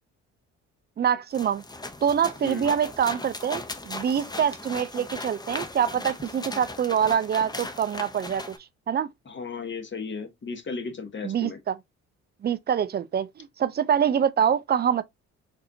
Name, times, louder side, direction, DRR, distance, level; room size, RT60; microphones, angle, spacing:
voice 1, 1.0-1.6 2.0-8.6 8.9-9.1 11.2-11.8 12.4-15.0, right 8 dB, 30° right, 0.4 m, -25 dB
sound 1, 1.3-8.6, left 2 dB, 10° left, 0.7 m, -38 dB
voice 2, 9.3-11.6, left 4 dB, 30° left, 1.1 m, -35 dB
4.0 x 2.6 x 2.7 m
hypercardioid pair, 50°, 36 cm